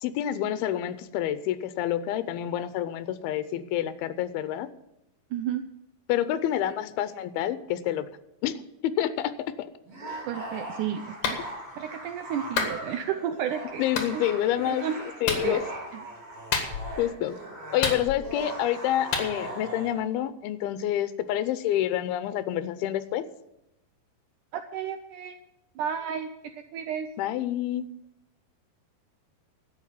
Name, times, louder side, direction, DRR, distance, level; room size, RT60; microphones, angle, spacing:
voice 1, 0.0-4.7 6.1-8.1 8.4-8.5 8.8-9.3 9.6-9.7 13.8-14.9 15.2-15.6 17.0-17.4 17.7-23.2 27.2-27.9, left 12 dB, 85° left, 12 dB, 2.6 m, -28 dB
voice 2, 5.3-5.6 10.3-11.4 11.8-14.2 14.6-15.0 15.3-15.6 24.5-25.4 25.8-26.3 26.7-27.1, right 9 dB, 85° right, 7 dB, 1.8 m, -32 dB
sound 1, 9.9-20.0, right 1 dB, 40° right, 5.0 m, -39 dB
Clapping, 11.2-11.4 12.6-12.8 14.0-14.1 15.3-15.5 16.5-17.0 17.8-18.4 19.1-19.3, left 5 dB, 60° left, 3.0 m, -28 dB
12.5 x 8.6 x 7.3 m, 0.86 s
omnidirectional pair, 4.4 m